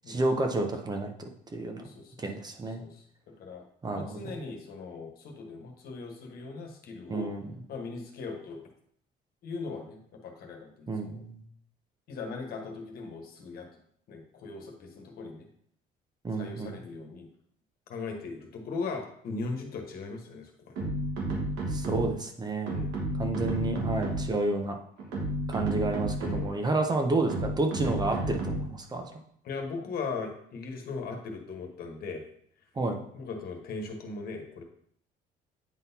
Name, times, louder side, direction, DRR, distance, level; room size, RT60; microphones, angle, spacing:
voice 1, 0.1-1.1 1.5-1.9 2.2-2.8 3.8-4.2 7.1-7.4 10.9-11.4 16.2-16.7 21.7-22.8 23.2-24.8 25.5-29.0 32.8-33.0, right 2 dB, 25° right, 4 dB, 0.7 m, -30 dB
voice 2, 1.7-2.2 2.8-3.7 3.9-7.3 7.7-8.7 9.4-11.2 12.1-13.7 14.1-15.5 16.3-17.3 17.9-20.9 22.6-23.0 26.2-26.6 29.4-32.2 33.1-34.6, left 4 dB, 65° left, 3 dB, 1.3 m, -39 dB
sound 1, 20.8-22.3 22.7-24.5 25.0-26.6 27.3-28.8, right 1 dB, 80° right, 1.6 m, -32 dB
9.0 x 3.9 x 2.8 m, 0.66 s
cardioid pair, 110°, 17 cm